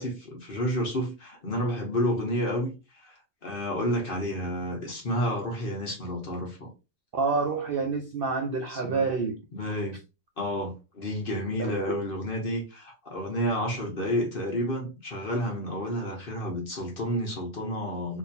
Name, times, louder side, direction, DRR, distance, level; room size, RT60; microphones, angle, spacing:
voice 1, 0.0-6.7 8.7-9.0 9.5-10.0 10.4-18.2, equal, 40° left, 1.1 m, -30 dB
voice 2, 7.1-9.4 11.6-11.9, right 4 dB, 70° right, 0.5 m, -28 dB
3.7 x 2.6 x 2.7 m
omnidirectional pair, 1.6 m